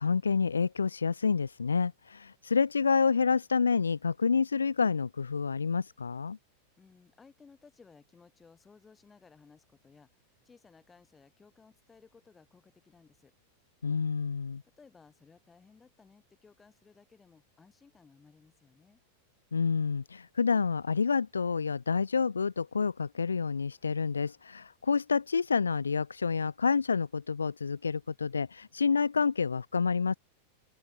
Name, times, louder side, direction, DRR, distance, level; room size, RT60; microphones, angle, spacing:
voice 1, 0.0-6.4 13.8-14.6 19.5-30.2, left 5 dB, 75° left, 0.4 m, -28 dB
voice 2, 6.8-13.3 14.8-19.0, left 5 dB, 15° left, 8.0 m, -59 dB
open air
figure-of-eight pair, 90°, 0 cm